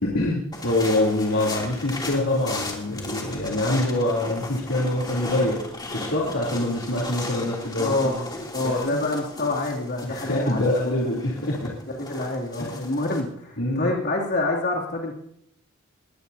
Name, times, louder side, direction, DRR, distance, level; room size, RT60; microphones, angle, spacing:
voice 1, 0.0-5.6 5.9-8.1 8.6-9.0 10.1-11.7 12.6-12.9 13.6-13.9, left 1 dB, 70° left, -5 dB, 3.6 m, -25 dB
sound 1, 0.5-13.2, left 2 dB, 20° left, 3.0 m, -36 dB
voice 2, 7.8-8.2 8.5-10.8 11.9-15.2, left 2 dB, 50° left, -2 dB, 2.9 m, -27 dB
21.0 x 18.0 x 2.8 m, 0.72 s
head